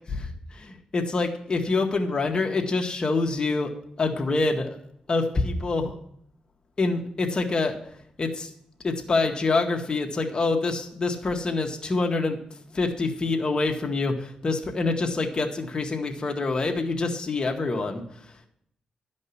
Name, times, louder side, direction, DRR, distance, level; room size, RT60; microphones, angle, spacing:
voice 1, 0.1-3.7 4.0-4.8 5.1-6.0 6.8-7.8 8.2-8.5 8.8-12.4 12.7-18.0, left 3 dB, 35° left, 3 dB, 1.8 m, -26 dB
12.5 x 5.4 x 8.5 m, 0.68 s
cardioid pair, 95°, 2 cm